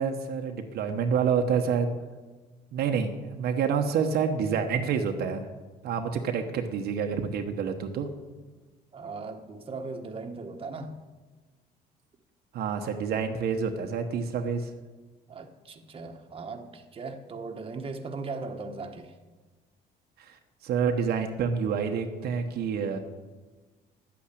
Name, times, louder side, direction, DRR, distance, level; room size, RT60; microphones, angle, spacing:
voice 1, 0.0-1.9 2.7-5.5 5.8-8.1 12.5-14.7 20.2-23.0, right 6 dB, 70° right, 1.1 m, -28 dB
voice 2, 8.9-11.0 15.3-19.1, right 3 dB, 35° right, 1.3 m, -38 dB
11.0 x 8.7 x 8.4 m
cardioid pair, 110°, 17 cm